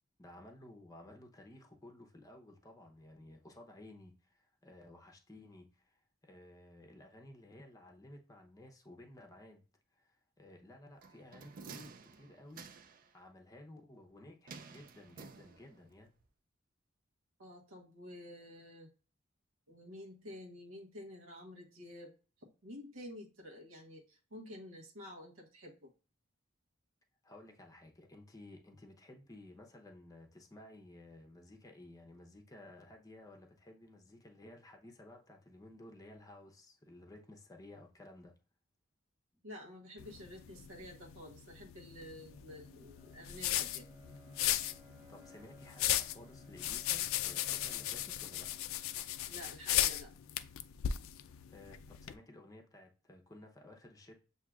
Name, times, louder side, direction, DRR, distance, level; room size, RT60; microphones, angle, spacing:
voice 1, 0.2-6.0 6.2-9.6 10.0-12.7 13.1-16.1 27.2-38.4 44.8-48.5 51.5-54.2, left 1 dB, 15° left, 0.7 m, -55 dB
sound 1, 11.0-13.1 14.5-15.9 16.2-16.3, right 5 dB, 45° right, 0.4 m, -52 dB
voice 2, 17.4-18.9 19.7-22.1 22.4-25.9 39.4-43.9 49.3-50.1, left 1 dB, 85° right, 1.1 m, -50 dB
sound 2, 40.0-52.1, left 12 dB, 85° left, 0.4 m, -37 dB
Bowed string instrument, 41.8-49.7, left 1 dB, 15° right, 0.8 m, -59 dB
7.3 x 2.7 x 2.3 m
head